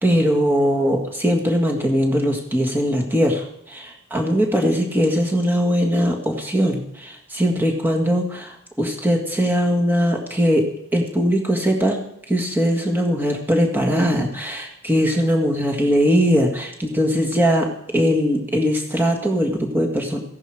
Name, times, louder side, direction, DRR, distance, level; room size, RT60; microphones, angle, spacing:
voice 1, 0.0-12.0 12.3-20.2, equal, 10° right, 1 dB, 1.8 m, -20 dB
15.5 x 11.0 x 4.9 m, 0.75 s
head